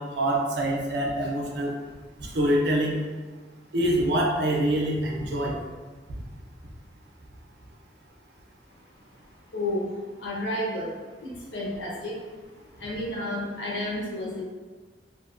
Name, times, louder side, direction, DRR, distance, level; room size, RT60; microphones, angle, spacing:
voice 1, 0.0-1.7 2.3-2.9 3.7-5.5, right 1 dB, 65° right, -2 dB, 0.5 m, -25 dB
voice 2, 9.5-12.4 12.8-14.4, left 1 dB, 85° left, -4 dB, 0.7 m, -31 dB
2.6 x 2.1 x 2.5 m, 1.4 s
head